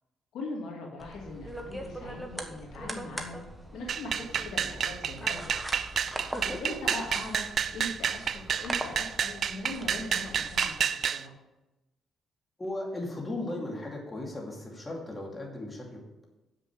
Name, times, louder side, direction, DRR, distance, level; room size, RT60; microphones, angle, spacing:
voice 1, 0.3-3.4 3.7-5.5 6.4-11.3, left 2 dB, 80° left, -1 dB, 2.4 m, -40 dB
sound 1, 1.0-10.7, right 1 dB, 5° right, 1.4 m, -41 dB
sound 2, 3.9-11.2, right 7 dB, 55° right, 0.4 m, -30 dB
voice 2, 12.6-16.3, left 2 dB, 20° left, -1 dB, 2.7 m, -37 dB
7.3 x 6.7 x 7.7 m, 0.98 s
cardioid pair, 90°, 0 cm